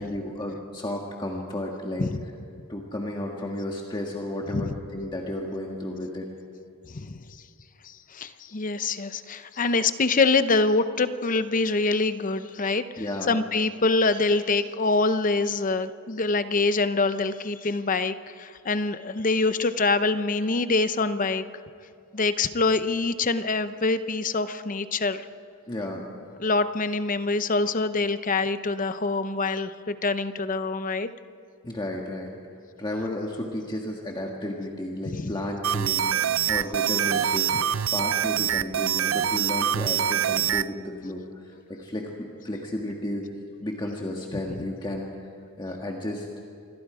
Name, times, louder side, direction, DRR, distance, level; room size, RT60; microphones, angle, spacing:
voice 1, 0.0-2.1 2.7-6.3 13.0-13.3 25.7-26.0 31.6-32.3 32.8-37.5 37.9-43.3 43.6-45.3 45.6-46.3, left 1 dB, 20° left, 0 dB, 1.6 m, -33 dB
voice 2, 6.9-7.2 7.8-21.4 22.1-25.2 26.4-31.1 35.1-35.3, left 3 dB, 40° left, 12 dB, 0.8 m, -25 dB
sound 1, 35.6-40.7, right 9 dB, 70° right, 0.5 m, -25 dB
27.5 x 21.0 x 5.0 m, 2.5 s
head